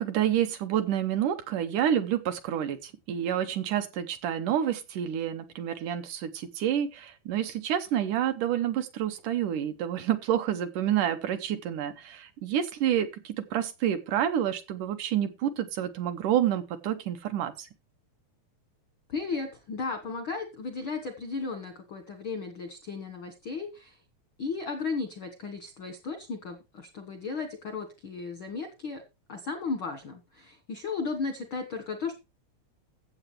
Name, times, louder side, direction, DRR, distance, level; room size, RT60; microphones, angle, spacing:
voice 1, 0.0-17.7, right 10 dB, 75° right, 2.1 m, -28 dB
voice 2, 19.1-24.0 24.4-29.0 29.3-32.1, left 4 dB, 70° left, 1.2 m, -35 dB
15.0 x 7.8 x 3.3 m
omnidirectional pair, 4.2 m